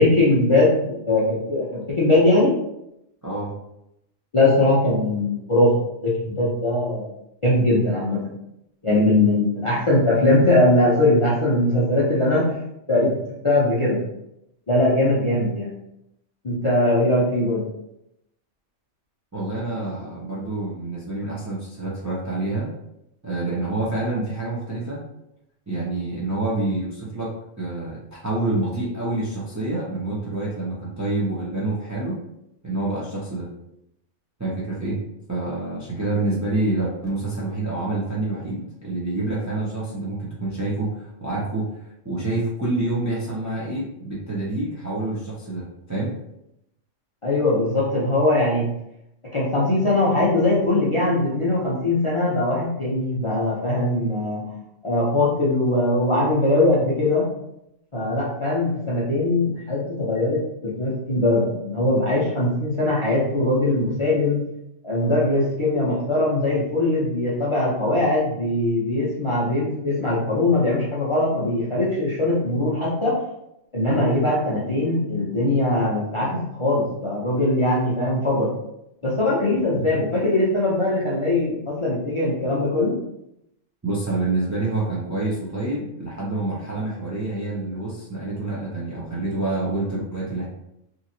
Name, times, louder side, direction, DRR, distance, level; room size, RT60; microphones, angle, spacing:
voice 1, 0.0-2.5 4.3-5.7 6.0-7.1 7.4-8.2 8.8-12.5 12.9-13.1 13.4-14.0 14.7-15.7 16.4-17.6 47.2-48.7 49.3-54.6 54.8-57.3 57.9-64.4 64.8-73.2 73.7-78.5 79.0-83.0, left 2 dB, 40° left, -7 dB, 0.4 m, -21 dB
voice 2, 3.2-3.5 19.3-22.7 23.2-25.0 25.7-32.2 32.6-33.5 34.4-35.0 35.3-41.8 42.0-46.1 79.8-79.9 83.8-90.5, right 2 dB, 25° right, -6 dB, 0.4 m, -27 dB
2.9 x 2.7 x 2.6 m, 0.82 s
omnidirectional pair, 1.3 m